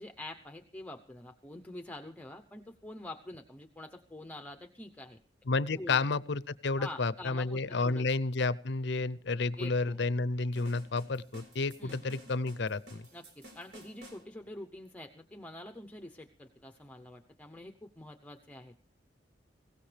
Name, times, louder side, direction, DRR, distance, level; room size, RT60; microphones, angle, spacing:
voice 1, 0.0-5.2 5.7-6.0 6.8-8.1 9.6-10.0 11.8-12.1 13.1-18.7, left 1 dB, 10° left, 5 dB, 0.8 m, -46 dB
voice 2, 5.5-13.0, left 3 dB, 65° left, 18 dB, 0.7 m, -31 dB
sound 1, 10.6-14.2, equal, 65° right, 3.9 m, -53 dB
21.5 x 17.0 x 3.3 m, 0.35 s
head